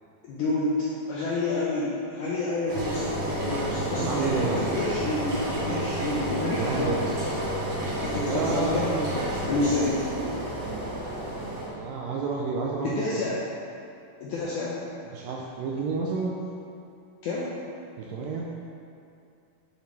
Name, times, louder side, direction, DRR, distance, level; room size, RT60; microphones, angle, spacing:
voice 1, 0.2-7.3 8.0-10.0 12.8-13.4 14.2-14.8 17.2-17.6, left 2 dB, 85° left, -6 dB, 1.7 m, -29 dB
Engine, 2.7-11.7, right 1 dB, 50° right, 2.7 m, -30 dB
voice 2, 4.0-4.6 6.6-7.1 8.3-8.8 11.8-13.2 15.1-16.4 18.0-18.5, right 4 dB, 85° right, -2 dB, 2.0 m, -29 dB
8.3 x 6.9 x 3.2 m, 2.5 s
omnidirectional pair, 4.5 m